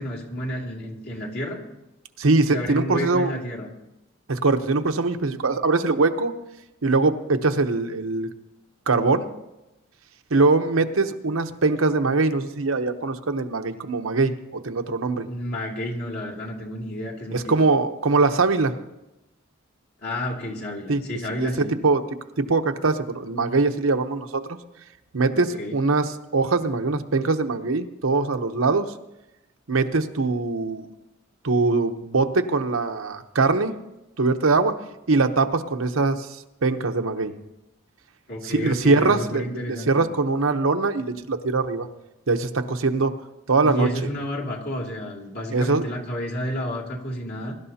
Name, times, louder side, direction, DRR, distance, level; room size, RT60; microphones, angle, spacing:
voice 1, 0.0-1.6 2.5-3.7 15.3-17.6 20.0-21.8 25.3-25.8 38.3-40.0 43.6-47.6, equal, 55° left, -3 dB, 2.6 m, -31 dB
voice 2, 2.2-3.3 4.3-6.3 6.8-8.3 8.9-9.3 10.3-15.3 17.3-18.7 20.9-21.0 21.4-22.0 22.4-24.6 25.1-28.9 29.7-30.9 31.4-33.7 34.2-34.7 35.1-36.3 36.6-37.3 38.4-41.9 42.3-43.1 43.5-43.9 45.5-45.9, right 3 dB, 90° right, 7 dB, 0.9 m, -22 dB
22.5 x 12.0 x 2.8 m, 0.94 s
head